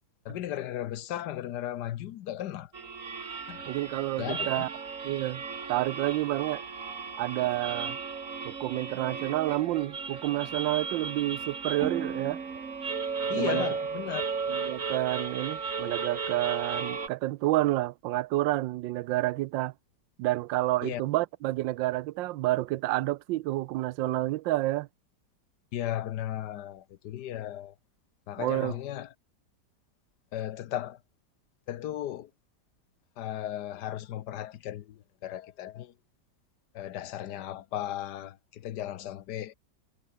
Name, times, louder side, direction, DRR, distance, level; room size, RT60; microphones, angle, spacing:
voice 1, 0.2-2.7 3.5-3.6 4.2-4.7 13.3-14.2 20.8-21.0 25.7-27.7 28.3-29.1 30.3-31.0 31.7-32.3 33.2-35.9 36.7-39.5, left 12 dB, 70° left, 1.3 m, -35 dB
sound 1, 2.7-17.1, right 5 dB, 45° right, 2.2 m, -35 dB
voice 2, 3.7-4.7 5.0-5.4 5.7-6.6 7.2-8.0 8.4-12.4 13.3-13.7 14.5-19.7 20.2-24.9 28.4-28.8, right 17 dB, 85° right, 1.3 m, -29 dB
omnidirectional pair, 2.0 m